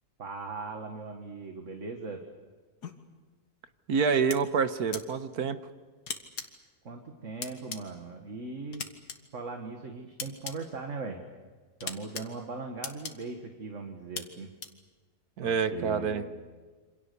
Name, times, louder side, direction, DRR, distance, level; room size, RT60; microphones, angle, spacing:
voice 1, 0.2-2.2 6.8-8.8 9.3-11.2 11.8-14.5 15.4-16.3, right 3 dB, 50° right, 3 dB, 2.2 m, -39 dB
sound 1, 2.8-2.9 4.3-4.4 4.9-5.0 6.1-6.4 7.4-7.8 8.7-9.2 10.2-10.5 11.8-12.2 12.8-13.1 14.2-14.3 14.6-14.7, left 6 dB, 90° left, 2.2 m, -36 dB
voice 2, 3.9-5.6 15.4-16.2, right 6 dB, 75° right, 11 dB, 1.7 m, -27 dB
27.5 x 26.5 x 6.9 m, 1.4 s
omnidirectional pair, 1.7 m